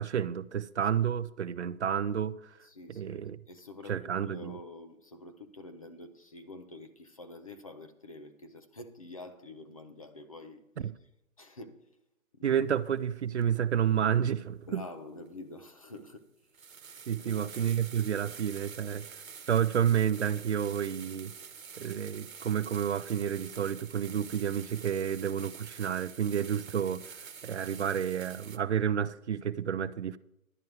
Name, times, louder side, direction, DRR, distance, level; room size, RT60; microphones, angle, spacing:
voice 1, 0.0-2.6 2.9-3.4 3.9-4.6 10.8-10.9 12.4-14.8 17.1-19.1 19.5-21.3 21.8-30.2, right 8 dB, 55° right, 0.5 m, -30 dB
voice 2, 2.6-10.9 11.4-11.9 12.3-12.6 14.7-16.3 17.2-17.8, left 2 dB, 25° left, 0.5 m, -47 dB
sound 1, 13.4-13.5 15.3-15.4 16.0-16.1 16.5-28.6, right 6 dB, 70° right, 1.2 m, -47 dB
11.0 x 9.3 x 4.6 m
figure-of-eight pair, 145°, 42 cm